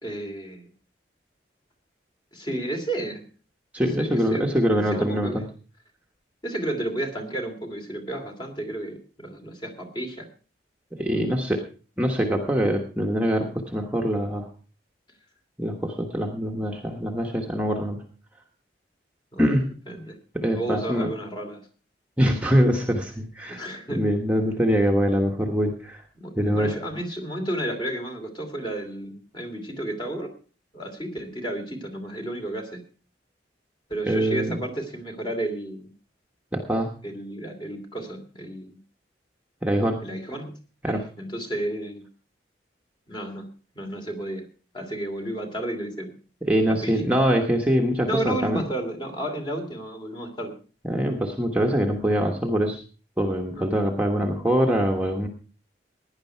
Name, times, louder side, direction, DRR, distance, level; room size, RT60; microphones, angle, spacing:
voice 1, 0.0-0.7 2.3-3.3 3.8-4.5 4.9-5.5 6.4-10.3 19.3-19.5 19.9-20.2 20.5-21.7 23.5-24.0 26.2-30.3 30.7-32.8 33.9-35.9 37.0-38.8 40.0-40.5 40.9-42.1 43.1-43.5 43.7-44.5 44.7-46.1 46.7-47.0 48.1-50.5 53.6-53.7, right 1 dB, 25° left, 4 dB, 2.7 m, -32 dB
voice 2, 3.7-5.3 11.0-11.6 12.0-14.5 15.6-18.0 19.4-19.7 20.3-21.1 22.2-23.6 24.0-26.0 26.3-26.7 34.1-34.6 36.5-36.9 39.6-40.0 40.8-41.0 46.5-48.6 50.9-52.8 53.2-55.3, equal, 5° right, 1 dB, 1.3 m, -23 dB
17.0 x 10.5 x 4.5 m, 0.37 s
head